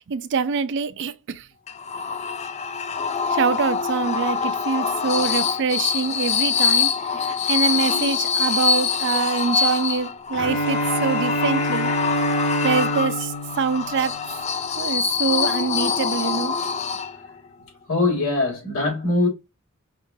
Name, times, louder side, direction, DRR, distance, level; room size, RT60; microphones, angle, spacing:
voice 1, 0.1-1.4 3.3-6.9 7.5-11.9 12.6-13.3 13.6-14.2 14.8-16.5, right 5 dB, 60° right, 0.4 m, -24 dB
sound 1, 1.7-17.4, left 6 dB, 30° left, 0.4 m, -24 dB
voice 2, 7.0-8.1 9.1-9.2 9.5-9.8 17.8-19.3, left 2 dB, 75° left, 2.6 m, -25 dB
Bowed string instrument, 10.3-14.4, equal, 50° left, 1.7 m, -26 dB
5.1 x 2.9 x 2.7 m
head